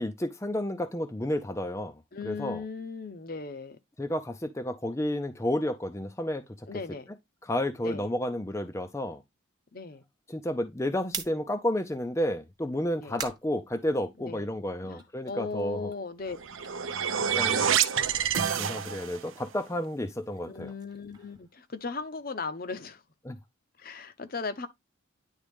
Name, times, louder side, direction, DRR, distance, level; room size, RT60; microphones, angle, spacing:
voice 1, 0.0-1.9 2.2-2.6 4.0-6.7 7.4-9.2 10.3-15.9 17.3-17.7 18.6-20.7 23.2-23.4, left 1 dB, 15° left, 0.5 m, -31 dB
voice 2, 2.1-3.8 6.7-7.1 7.8-8.1 9.7-10.0 13.0-13.2 14.2-14.5 14.9-16.4 20.4-23.0 23.8-24.7, left 4 dB, 45° left, 0.7 m, -37 dB
sound 1, 11.1-14.5 14.8-17.8 18.1-22.2, right 6 dB, 20° right, 1.0 m, -46 dB
sound 2, 16.3-19.3, right 8 dB, 80° right, 0.7 m, -27 dB
9.8 x 3.6 x 3.4 m
head